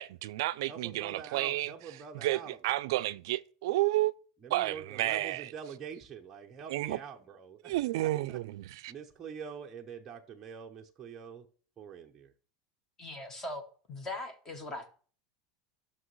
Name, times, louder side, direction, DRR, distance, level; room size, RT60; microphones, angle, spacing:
voice 1, 0.0-1.7 2.2-4.1 4.5-5.4 6.7-7.0 7.6-8.4 8.8-8.9, right 17 dB, 65° right, 0.4 m, -31 dB
voice 2, 0.7-2.6 4.4-8.4 8.9-11.5 11.8-12.3, right 6 dB, 15° right, 0.6 m, -45 dB
voice 3, 13.0-14.9, left 2 dB, 15° left, 0.8 m, -40 dB
13.5 x 5.9 x 3.1 m
supercardioid pair, 175°, 2 cm